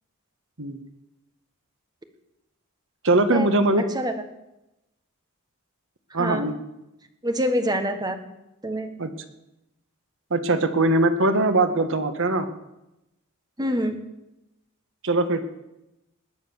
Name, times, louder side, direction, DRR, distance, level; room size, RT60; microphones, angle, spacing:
voice 1, 3.0-3.8 6.1-6.5 9.0-9.1 10.3-12.5 15.0-15.4, right 2 dB, 60° right, 8 dB, 1.5 m, -21 dB
voice 2, 6.2-6.5 7.2-8.2 8.6-8.9 13.6-14.0, equal, 20° right, 7 dB, 1.5 m, -26 dB
20.0 x 8.6 x 7.1 m, 0.92 s
head